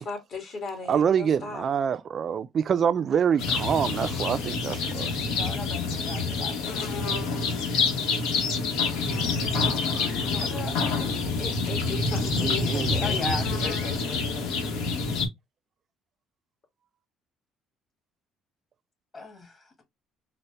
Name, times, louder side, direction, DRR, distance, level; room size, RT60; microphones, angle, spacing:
voice 1, 0.0-1.7 9.5-13.4, left 4 dB, 50° left, 1.8 m, -38 dB
voice 2, 0.9-5.1 12.4-13.0, right 7 dB, 45° right, 0.3 m, -26 dB
sound 1, 3.4-15.3, left 4 dB, 85° left, 0.9 m, -27 dB
voice 3, 5.4-6.7 10.4-10.7 13.0-14.5 19.1-19.8, left 1 dB, 30° left, 1.7 m, -37 dB
4.0 x 2.1 x 3.3 m
cardioid pair, 105°, 0 cm